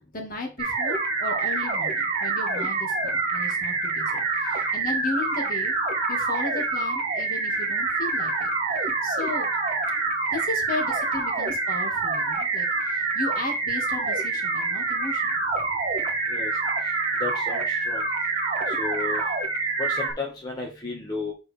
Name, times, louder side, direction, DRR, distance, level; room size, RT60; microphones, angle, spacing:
voice 1, 0.1-5.7 6.1-8.5 9.0-9.5 10.3-15.4, left 2 dB, 45° left, 2 dB, 1.9 m, -35 dB
sound 1, 0.6-20.1, right 3 dB, 35° right, 1.8 m, -26 dB
voice 2, 17.2-18.0 18.8-19.2 19.9-21.3, left 3 dB, 20° left, -2 dB, 1.3 m, -33 dB
7.3 x 4.5 x 3.4 m, 0.31 s
head